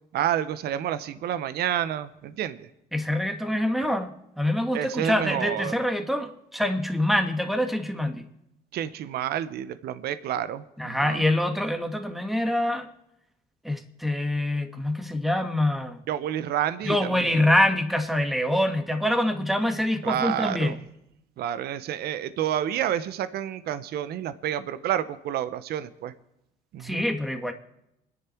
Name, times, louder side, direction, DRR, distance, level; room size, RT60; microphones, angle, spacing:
voice 1, 0.1-2.7 4.7-5.7 8.7-11.2 16.1-17.4 20.0-20.8 21.4-26.1 26.7-27.0, right 11 dB, 70° right, 14 dB, 1.0 m, -29 dB
voice 2, 2.9-8.3 10.8-12.9 13.6-16.0 16.9-20.7 26.8-27.5, left 1 dB, ahead, 6 dB, 1.8 m, -25 dB
27.5 x 10.5 x 4.6 m, 0.84 s
cardioid pair, 110°, 17 cm